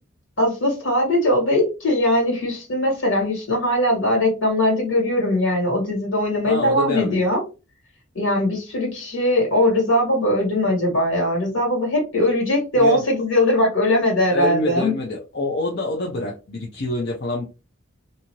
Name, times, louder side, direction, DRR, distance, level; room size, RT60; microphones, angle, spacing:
voice 1, 0.4-7.4 8.1-14.9, left 1 dB, 75° left, -1 dB, 1.8 m, -20 dB
voice 2, 6.4-7.2 12.8-13.0 14.3-17.5, left 2 dB, 55° left, 0 dB, 0.6 m, -26 dB
2.7 x 2.5 x 2.9 m, 0.30 s
head